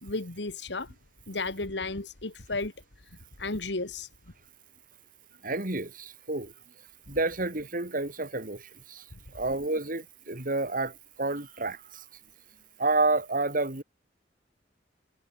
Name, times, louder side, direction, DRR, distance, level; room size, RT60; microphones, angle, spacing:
voice 1, 0.0-0.9 1.3-2.7 3.4-4.1, left 3 dB, 75° left, 2.2 m, -33 dB
voice 2, 5.4-6.5 7.1-8.6 8.9-9.0 9.3-10.9 11.2-11.8 12.8-13.8, right 2 dB, 50° right, 3.3 m, -29 dB
head